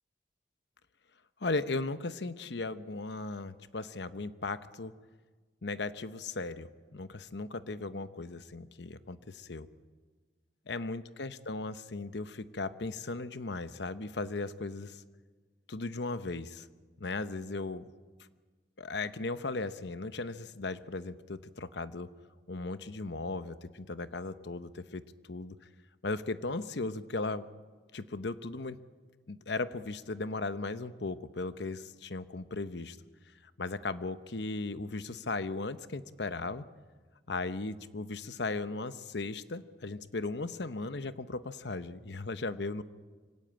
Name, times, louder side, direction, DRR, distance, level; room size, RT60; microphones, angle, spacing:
voice 1, 1.4-4.9 5.6-9.7 10.7-15.0 15.7-16.7 17.0-17.8 18.8-22.1 22.5-25.6 26.0-27.5 27.9-28.8 29.3-33.0 33.4-36.7 37.3-42.8, left 3 dB, 85° left, 12 dB, 0.9 m, -37 dB
25.0 x 17.0 x 8.8 m, 1.4 s
head